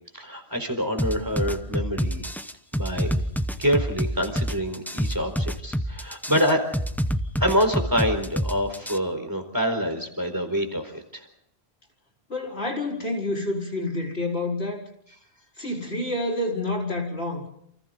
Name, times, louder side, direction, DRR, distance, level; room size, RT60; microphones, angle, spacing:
voice 1, 0.1-2.3 2.7-3.1 3.6-6.6 7.4-11.2, equal, 20° right, 5 dB, 4.3 m, -26 dB
sound 1, 1.0-9.0, equal, ahead, 0.9 m, -27 dB
voice 2, 12.3-14.8 15.6-17.5, left 2 dB, 75° left, 0 dB, 5.1 m, -28 dB
29.5 x 28.5 x 4.0 m, 0.70 s
omnidirectional pair, 1.1 m